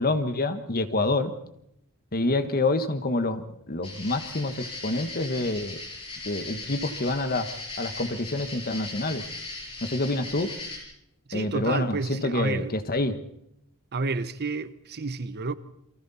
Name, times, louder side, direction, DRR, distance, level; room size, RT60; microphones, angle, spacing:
voice 1, 0.0-1.3 2.1-5.8 6.2-9.3 9.8-10.5 11.3-13.2, left 2 dB, 45° left, 1.5 m, -27 dB
sound 1, 3.8-10.8, left 3 dB, 25° left, 6.8 m, -38 dB
voice 2, 11.3-12.7 13.9-15.5, right 3 dB, 45° right, 0.9 m, -30 dB
29.0 x 23.5 x 4.3 m
head